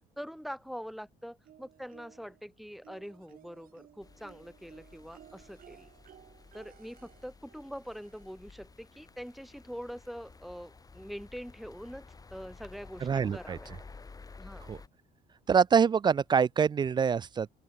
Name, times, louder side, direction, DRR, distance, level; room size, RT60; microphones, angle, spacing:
voice 1, 0.2-5.9 6.5-12.1 12.3-13.7 14.4-14.7, equal, ahead, 2.0 m, -44 dB
sound 1, 1.4-2.4 2.8-8.5 9.7-9.8 10.2-10.3, right 11 dB, 55° right, 2.6 m, -58 dB
sound 2, 4.0-14.9, left 4 dB, 20° left, 1.9 m, -53 dB
voice 2, 13.0-13.6 14.7-14.8 15.5-17.5, right 6 dB, 25° right, 0.3 m, -25 dB
open air
cardioid pair, 110°, 17 cm